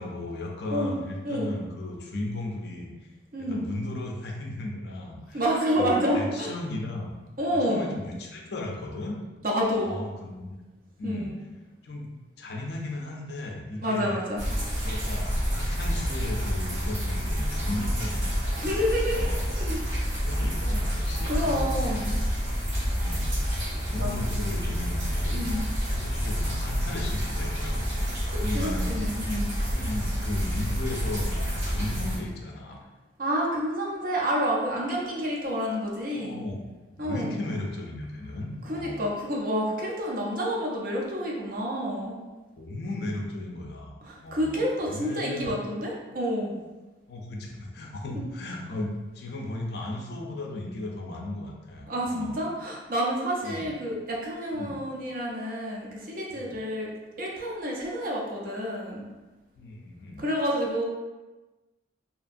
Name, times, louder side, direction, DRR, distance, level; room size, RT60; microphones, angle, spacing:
voice 1, 0.0-3.1 3.4-5.4 5.8-7.1 7.5-9.2 9.8-10.6 11.0-11.3 11.8-12.1 12.4-14.2 14.8-18.6 19.1-19.5 20.2-22.2 22.9-25.5 25.9-29.1 29.7-32.8 36.1-36.7 37.0-39.1 42.6-45.5 47.1-52.4 53.4-53.7 54.5-54.8 56.3-56.6 59.6-60.2, left 2 dB, 55° left, 0 dB, 0.4 m, -36 dB
voice 2, 5.3-6.5 7.4-7.9 9.4-9.9 11.0-11.4 13.8-14.4 18.5-19.8 21.3-22.2 24.0-24.1 25.3-25.6 28.3-29.5 33.2-36.4 37.0-37.4 38.7-42.2 44.0-46.5 51.9-56.9 57.2-59.0 60.2-60.8, equal, 45° right, -2 dB, 0.5 m, -29 dB
sound 1, 14.4-32.2, equal, 90° right, 1.0 m, -28 dB
2.8 x 2.5 x 2.5 m, 1.2 s
head